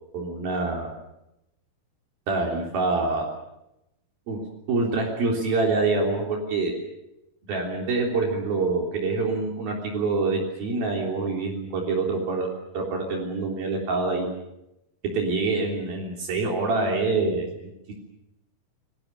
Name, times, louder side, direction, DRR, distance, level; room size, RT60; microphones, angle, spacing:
voice 1, 0.1-0.9 2.3-3.3 4.3-4.4 4.7-6.8 7.5-12.5 12.7-14.3 15.1-17.9, right 3 dB, 65° right, 1 dB, 5.3 m, -26 dB
28.5 x 20.5 x 6.9 m, 0.85 s
omnidirectional pair, 4.5 m